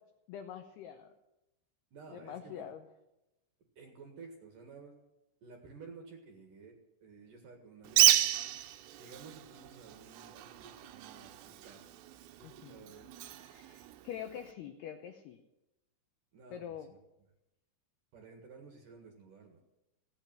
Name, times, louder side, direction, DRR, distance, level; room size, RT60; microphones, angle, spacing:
voice 1, 0.3-1.1 2.1-2.9 12.4-12.8 13.5-15.4 16.5-16.9, left 9 dB, 90° left, 6 dB, 2.3 m, -45 dB
voice 2, 1.9-2.7 3.8-4.9 5.4-8.2 9.0-11.3 11.6-11.8 12.3-13.1 16.3-16.6 16.9-17.0 18.1-19.6, right 4 dB, 60° right, 2 dB, 2.5 m, -53 dB
Bird, 7.8-14.5, right 13 dB, 80° right, 2.7 m, -32 dB
17.0 x 8.7 x 9.0 m, 0.96 s
omnidirectional pair, 5.9 m